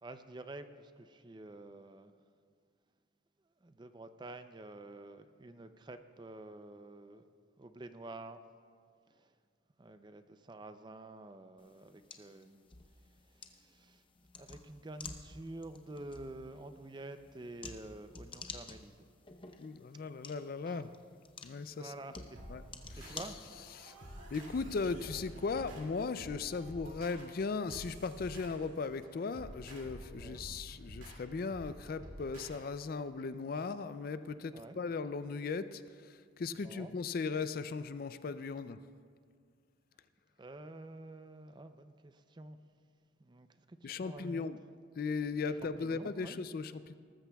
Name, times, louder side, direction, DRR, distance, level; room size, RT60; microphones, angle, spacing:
voice 1, 0.0-2.2 3.6-7.3 7.6-8.4 9.1-9.4 9.8-12.6 12.9-14.0 14.4-19.0 20.7-21.0 21.8-22.4 23.0-24.3 30.2-30.5 34.5-34.8 36.5-36.9 40.4-42.6 43.2-44.5 45.5-46.4, right 2 dB, 25° right, 9 dB, 0.4 m, -49 dB
sound 1, 11.6-23.9, left 4 dB, 25° left, 0.7 m, -52 dB
voice 2, 19.6-20.9 21.4-21.9 22.5-22.6 22.9-23.9 24.3-38.8 43.8-44.6 45.0-46.9, left 4 dB, 50° left, 12 dB, 0.4 m, -38 dB
sound 2, 22.3-32.6, equal, 75° right, 2.4 m, -50 dB
19.5 x 14.0 x 2.3 m, 2.1 s
head